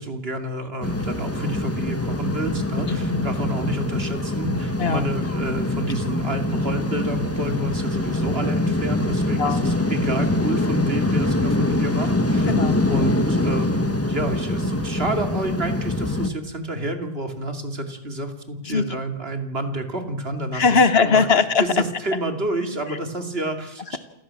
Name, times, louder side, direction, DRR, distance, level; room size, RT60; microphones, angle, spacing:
voice 1, 0.0-12.5 12.9-20.6 21.0-21.3 21.6-24.0, right 1 dB, 75° right, 6 dB, 2.8 m, -29 dB
sound 1, 0.8-16.3, left 1 dB, 15° left, 1.3 m, -24 dB
voice 2, 2.9-3.3 4.8-5.0 9.4-9.6 12.5-12.8 18.6-18.8 20.5-21.6 22.9-23.0, left 5 dB, 80° left, 12 dB, 1.6 m, -20 dB
28.5 x 14.5 x 7.6 m, 0.92 s
omnidirectional pair, 1.0 m